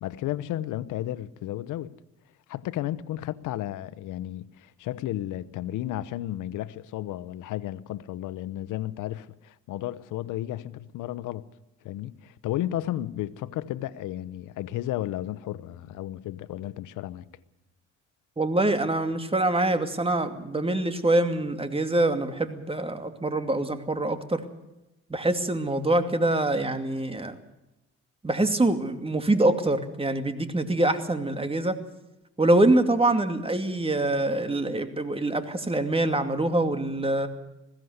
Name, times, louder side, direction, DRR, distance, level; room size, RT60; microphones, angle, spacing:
voice 1, 0.0-1.9 2.5-11.5 11.8-17.2, left 13 dB, 90° left, 0.9 m, -33 dB
voice 2, 18.4-24.4 25.1-27.3 28.2-31.8 32.4-37.3, right 2 dB, 20° right, 2.4 m, -25 dB
20.5 x 16.0 x 8.0 m
cardioid pair, 90°, 30 cm